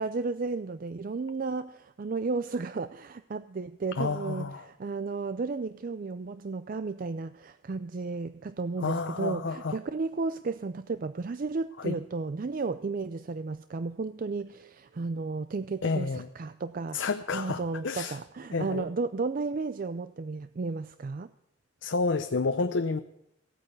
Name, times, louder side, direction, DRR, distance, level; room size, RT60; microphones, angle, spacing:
voice 1, 0.0-17.0 17.3-21.3, right 4 dB, 45° right, 12 dB, 0.4 m, -33 dB
voice 2, 4.0-4.7 8.8-9.8 11.8-11.9 15.8-16.3 16.9-18.2 18.5-18.9 21.8-23.0, left 4 dB, 80° left, 8 dB, 0.7 m, -30 dB
15.5 x 9.0 x 8.1 m, 0.80 s
head